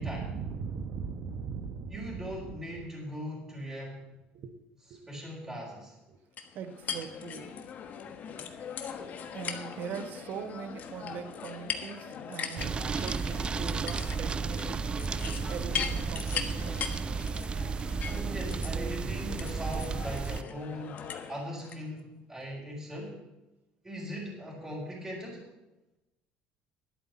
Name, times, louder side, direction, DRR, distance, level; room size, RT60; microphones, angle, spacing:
voice 1, 0.0-2.6 4.3-4.5 4.9-5.3 6.1-6.2 6.5-7.5 9.3-14.7 15.5-17.0, right 6 dB, 55° right, 10 dB, 1.0 m, -40 dB
voice 2, 1.9-4.0 5.1-6.0 18.1-23.2 23.8-25.5, equal, 10° right, -6 dB, 4.2 m, -39 dB
sound 1, 6.4-21.8, left 7 dB, 45° left, 1.3 m, -40 dB
sound 2, 12.6-20.4, right 5 dB, 25° right, 0.4 m, -33 dB
11.5 x 8.5 x 7.3 m, 0.99 s
cardioid pair, 120°, 4 cm